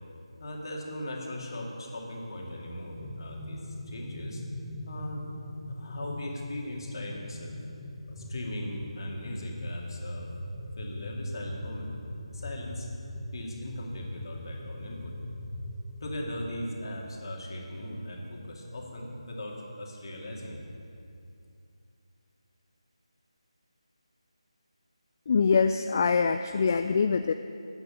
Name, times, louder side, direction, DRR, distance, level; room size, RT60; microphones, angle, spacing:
voice 1, 0.4-4.4 4.9-5.2 5.7-7.5 8.1-10.3 10.8-11.9 12.3-12.9 13.3-15.1 16.0-20.7, left 1 dB, 45° left, -1 dB, 2.3 m, -38 dB
sound 1, 3.0-16.7, left 1 dB, 15° left, 1.1 m, -40 dB
voice 2, 25.3-27.3, left 5 dB, 30° left, 9 dB, 0.3 m, -24 dB
10.5 x 8.8 x 7.8 m, 2.5 s
figure-of-eight pair, 165°, 3 cm